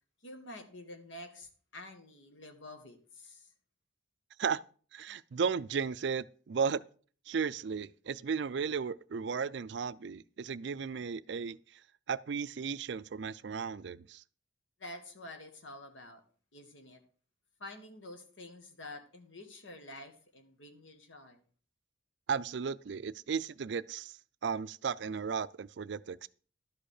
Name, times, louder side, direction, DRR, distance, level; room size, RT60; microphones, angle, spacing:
voice 1, 0.2-3.5 14.8-16.2 16.5-17.0 17.6-21.4, left 1 dB, 75° left, 1.9 m, -48 dB
voice 2, 4.9-6.8 7.3-11.8 12.1-14.2 22.3-24.1 24.4-26.3, right 6 dB, 60° right, 0.4 m, -35 dB
12.0 x 5.1 x 6.5 m
head